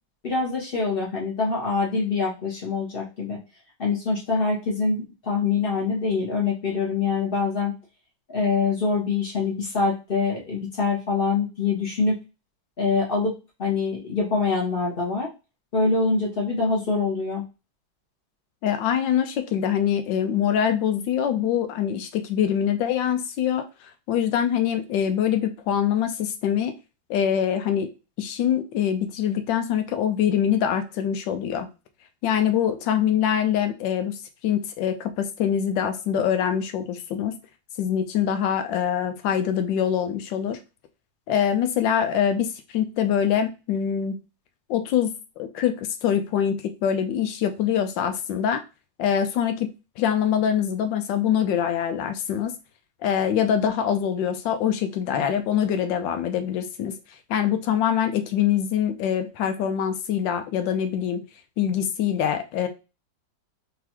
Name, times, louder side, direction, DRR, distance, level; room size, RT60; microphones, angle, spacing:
voice 1, 0.2-3.4 3.8-7.7 8.3-12.2 12.8-15.3 15.7-17.4, left 4 dB, 30° left, -3 dB, 1.4 m, -24 dB
voice 2, 18.6-23.7 24.1-26.8 27.1-27.9 28.2-31.7 32.2-34.2 34.4-37.4 37.8-40.6 41.3-44.2 44.7-48.6 49.0-52.6 53.0-56.9 57.3-61.2 61.6-62.7, left 9 dB, 80° left, 7 dB, 1.3 m, -24 dB
3.9 x 3.3 x 2.9 m, 0.29 s
omnidirectional pair, 2.0 m